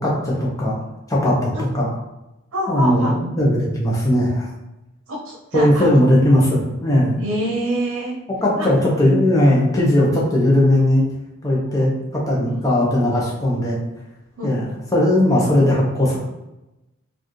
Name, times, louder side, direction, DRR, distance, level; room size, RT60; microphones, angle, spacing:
voice 1, 0.0-0.8 1.1-1.9 2.7-4.5 5.5-7.2 8.4-11.0 11.4-13.8 14.4-16.2, left 1 dB, 15° left, -4 dB, 0.8 m, -18 dB
voice 2, 2.5-3.1 5.1-5.8 7.2-8.2 8.6-8.7 10.0-10.1 11.6-11.9 12.4-12.6 14.4-14.5, right 1 dB, 85° right, -2 dB, 0.7 m, -26 dB
4.4 x 2.5 x 3.1 m, 0.97 s
head